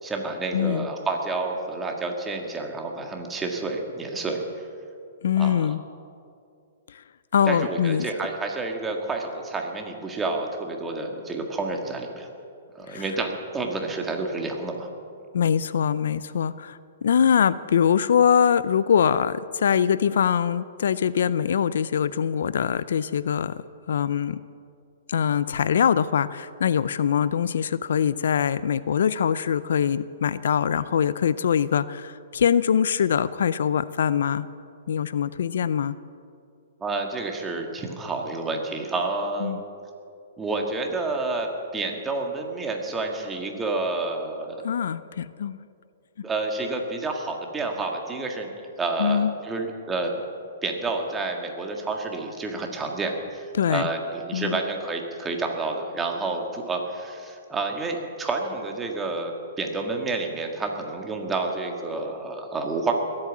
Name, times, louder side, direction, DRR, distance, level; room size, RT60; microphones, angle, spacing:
voice 1, 0.0-4.4 5.4-5.7 7.5-12.3 12.7-14.9 36.8-39.6 40.4-44.6 46.2-48.5 48.8-50.2 50.6-62.9, right 3 dB, 10° right, 2 dB, 1.7 m, -29 dB
voice 2, 0.5-0.9 5.2-5.8 6.9-7.0 7.3-8.1 12.9-13.0 15.3-24.4 25.1-34.5 34.9-36.0 39.4-39.6 44.6-45.7 49.0-49.3 53.5-53.9 54.3-54.6, left 8 dB, 75° left, 17 dB, 0.5 m, -23 dB
20.5 x 8.7 x 7.4 m, 2.4 s
hypercardioid pair, 150°, 0 cm